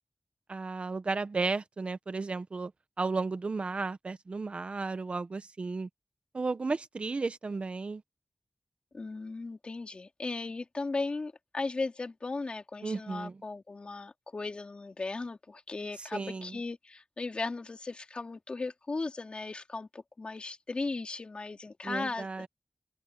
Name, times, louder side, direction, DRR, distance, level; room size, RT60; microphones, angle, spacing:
voice 1, 0.5-2.7 3.0-5.9 6.3-8.0 12.8-13.4 16.0-16.6 21.8-22.5, right 3 dB, 60° right, 1.3 m, -34 dB
voice 2, 8.9-22.4, left 3 dB, 55° left, 2.8 m, -37 dB
wide cardioid pair, 80°, 2 cm